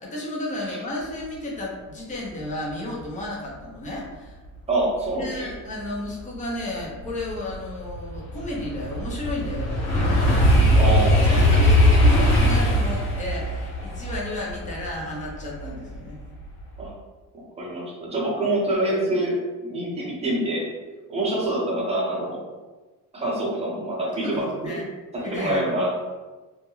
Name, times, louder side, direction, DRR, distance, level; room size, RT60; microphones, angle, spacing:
voice 1, 0.0-4.4 5.2-10.6 11.2-16.2 24.2-24.9 25.2-25.6, left 1 dB, 25° left, -3 dB, 0.6 m, -33 dB
voice 2, 4.7-5.5 10.7-11.6 16.8-16.9 17.6-19.4 19.6-20.6 21.1-22.4 23.1-24.7 25.1-26.0, right 1 dB, 20° right, -4 dB, 0.6 m, -26 dB
sound 1, 6.3-6.4 6.9-16.0 16.4-16.8, equal, 85° left, 0.8 m, -20 dB
2.3 x 2.1 x 3.0 m, 1.2 s
cardioid pair, 150°, 32 cm